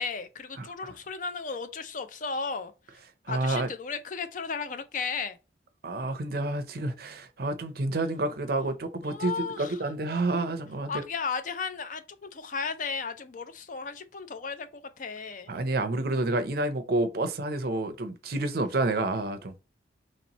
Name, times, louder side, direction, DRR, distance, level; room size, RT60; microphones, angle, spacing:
voice 1, 0.0-2.7 3.3-5.4 9.0-9.8 10.9-14.7 15.0-15.5, left 5 dB, 45° left, 0.4 m, -34 dB
voice 2, 0.6-0.9 3.3-3.7 5.8-11.0 15.5-19.5, right 2 dB, 55° right, 0.5 m, -29 dB
3.0 x 2.9 x 4.0 m
head